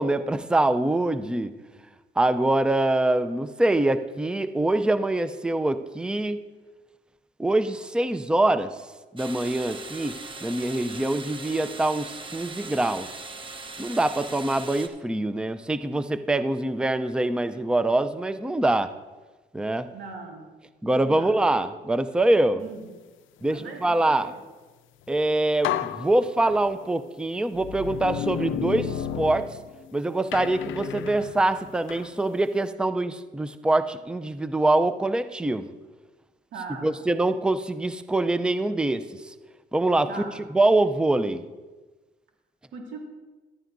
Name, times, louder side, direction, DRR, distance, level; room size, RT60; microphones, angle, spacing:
voice 1, 0.0-1.5 2.2-6.4 7.4-8.8 9.1-13.2 13.8-18.9 19.5-19.9 20.8-22.6 23.4-24.3 25.1-29.5 29.9-35.7 36.8-39.3 39.7-40.1 40.5-41.4, right 2 dB, 5° right, 11 dB, 0.4 m, -24 dB
sound 1, 9.2-14.9, right 3 dB, 25° right, 0.9 m, -40 dB
voice 2, 19.9-20.5 20.9-21.4 22.6-22.9 23.4-24.4 36.5-37.0 40.1-40.4 42.7-43.1, right 4 dB, 80° right, 1 dB, 1.9 m, -39 dB
sound 2, 25.1-25.2 25.6-26.9 27.6-29.9 30.3-32.1, left 11 dB, 80° left, 0.5 m, -32 dB
14.0 x 11.0 x 2.6 m, 1.2 s
cardioid pair, 90°, 20 cm